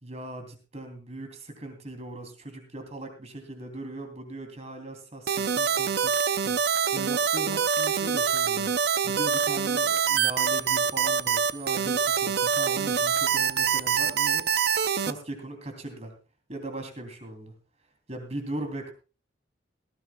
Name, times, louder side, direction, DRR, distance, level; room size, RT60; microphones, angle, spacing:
voice 1, 0.0-0.5 0.7-8.7 9.0-14.5 14.9-16.1 16.5-17.5 18.1-18.9, right 1 dB, 35° right, 6 dB, 2.9 m, -39 dB
sound 1, 5.3-15.1, right 7 dB, 55° right, 0.5 m, -25 dB
18.0 x 15.0 x 2.3 m, 0.33 s
head